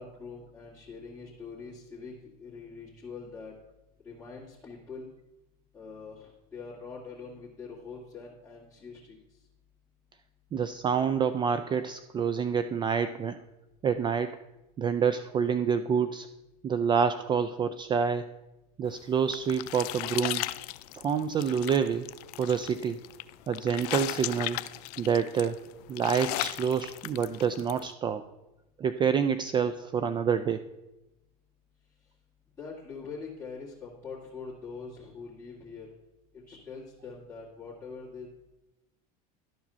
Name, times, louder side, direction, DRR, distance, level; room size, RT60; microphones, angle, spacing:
voice 1, 0.0-3.5 4.0-5.1 5.7-9.2 32.6-35.9 36.3-38.3, left 4 dB, 10° left, -10 dB, 2.2 m, -43 dB
voice 2, 10.5-13.4 13.8-14.4 14.8-16.3 16.6-18.3 18.8-20.5 20.9-22.1 22.4-23.0 23.5-24.6 25.0-25.6 25.9-28.2 28.8-30.6, right 7 dB, 25° right, 11 dB, 0.3 m, -27 dB
sound 1, 18.9-27.8, left 18 dB, 70° left, 0.4 m, -37 dB
11.5 x 4.7 x 5.6 m, 0.99 s
supercardioid pair, 120°, 20 cm